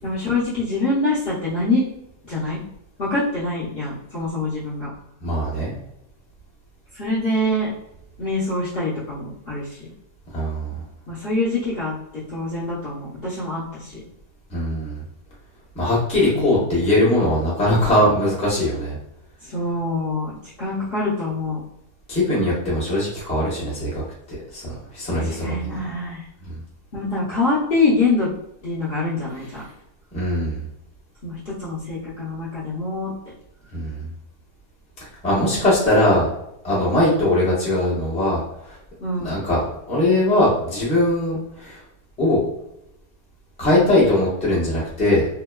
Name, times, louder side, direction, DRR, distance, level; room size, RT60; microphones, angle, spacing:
voice 1, 0.0-1.8 2.3-2.6 3.0-4.9 6.9-7.7 8.2-9.9 11.1-11.9 12.3-14.0 16.3-17.0 19.4-21.6 25.1-26.2 26.9-28.3 28.6-29.6 31.2-33.1 35.6-35.7 36.9-37.3 39.0-39.3, left 2 dB, 50° left, -8 dB, 0.7 m, -25 dB
voice 2, 5.2-5.7 10.3-10.8 14.5-15.0 15.7-18.9 22.1-23.9 24.5-25.8 30.1-30.6 33.7-34.0 35.2-36.3 36.6-38.4 38.7-38.8 39.2-41.8 42.2-42.4 43.6-45.3, left 1 dB, 5° left, -7 dB, 0.6 m, -20 dB
2.9 x 2.2 x 2.2 m, 0.83 s
omnidirectional pair, 1.7 m